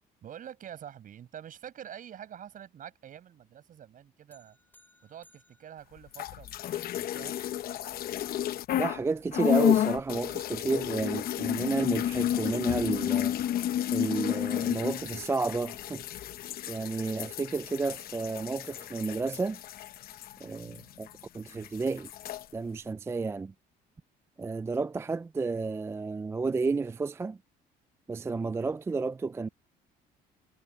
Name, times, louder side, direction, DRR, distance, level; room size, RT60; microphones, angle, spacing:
voice 1, 0.2-4.6 5.0-7.4, right 10 dB, 55° right, 6.2 m, -46 dB
sound 1, 4.3-6.8, left 1 dB, 10° left, 4.5 m, -64 dB
sound 2, 6.1-9.0 9.3-21.2 21.5-22.4, left 11 dB, 60° left, 0.9 m, -31 dB
voice 2, 8.8-13.6 13.9-16.2 16.7-19.6 20.4-21.1 21.3-22.1 22.5-23.5 24.4-27.4 28.1-29.5, right 4 dB, 15° right, 0.3 m, -31 dB
cardioid pair, 110°, 17 cm